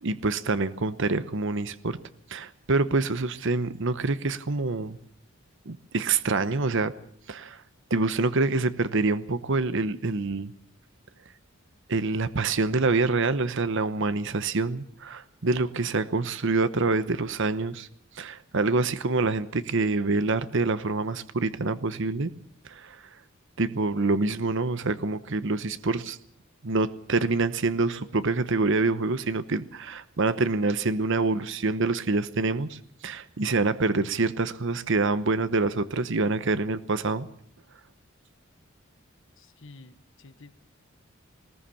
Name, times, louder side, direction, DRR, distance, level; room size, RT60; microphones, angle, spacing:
voice 1, 0.0-2.0 2.3-5.0 5.7-6.9 7.3-7.6 7.9-10.5 11.9-17.9 18.1-22.3 22.6-23.0 23.6-26.2 26.6-37.3, right 3 dB, 65° right, 13 dB, 1.0 m, -26 dB
voice 2, 39.4-40.5, left 3 dB, 65° left, 11 dB, 1.3 m, -50 dB
20.0 x 18.5 x 7.1 m, 0.63 s
head